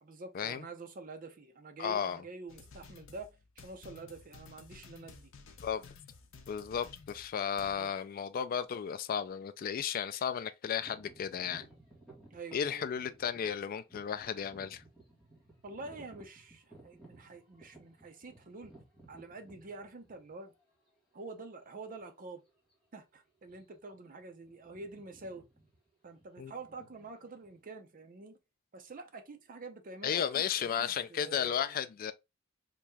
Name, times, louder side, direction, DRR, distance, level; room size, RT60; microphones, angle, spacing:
voice 1, 0.0-3.3 3.6-5.3 7.6-7.9 12.3-12.9 15.6-18.7 19.1-20.5 21.1-22.4 22.9-25.4 26.0-28.4 28.7-31.7, right 3 dB, 40° right, 0.6 m, -47 dB
voice 2, 1.8-2.2 5.6-5.8 6.5-11.7 12.5-14.8 26.4-26.5 30.0-32.1, left 8 dB, 45° left, 0.3 m, -34 dB
sound 1, 2.5-7.7, left 4 dB, 70° left, 0.6 m, -54 dB
sound 2, 10.8-20.6 21.2-21.3 22.0-22.2 22.5-22.7 23.4-23.9 24.2-27.6, right 2 dB, ahead, 1.5 m, -58 dB
3.0 x 2.7 x 3.4 m
head